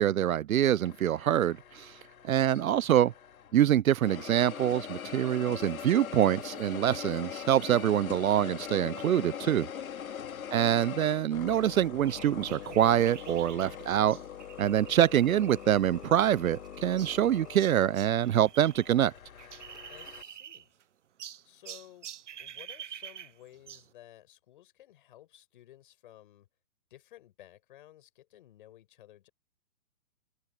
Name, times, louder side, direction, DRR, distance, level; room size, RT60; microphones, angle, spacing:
voice 1, 0.0-1.9 2.2-3.1 3.5-9.7 10.5-14.2 14.6-19.1, right 11 dB, 70° right, 0.6 m, -25 dB
sound 1, 0.8-3.6 4.0-20.2, left 8 dB, 70° left, 2.3 m, -42 dB
voice 2, 2.4-2.8 10.2-10.6 19.9-20.7 21.4-22.1 22.4-26.5 26.9-29.3, left 13 dB, 35° left, 5.1 m, -55 dB
sound 2, 4.5-20.5, right 8 dB, 10° right, 7.5 m, -70 dB
sound 3, 12.1-18.9 19.2-20.8 21.2-23.9, right 9 dB, 55° right, 0.9 m, -48 dB
hypercardioid pair, 170°, 44 cm